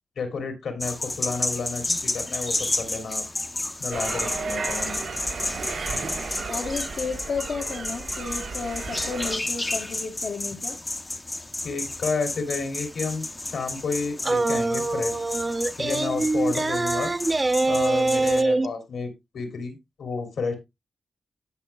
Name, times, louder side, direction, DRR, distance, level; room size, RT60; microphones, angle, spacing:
voice 1, 0.2-3.2 3.8-5.0 11.6-15.2 15.8-17.1 17.7-20.5, left 4 dB, 85° left, 2.9 m, -31 dB
sound 1, 0.8-18.4, left 2 dB, 20° left, 0.6 m, -32 dB
sound 2, 3.9-9.3, right 4 dB, 80° right, 6.7 m, -34 dB
voice 2, 6.5-10.8, left 5 dB, 70° left, 1.0 m, -32 dB
sound 3, 14.2-18.7, right 2 dB, 30° right, 0.6 m, -24 dB
17.0 x 5.8 x 2.3 m
wide cardioid pair, 95°, 0 cm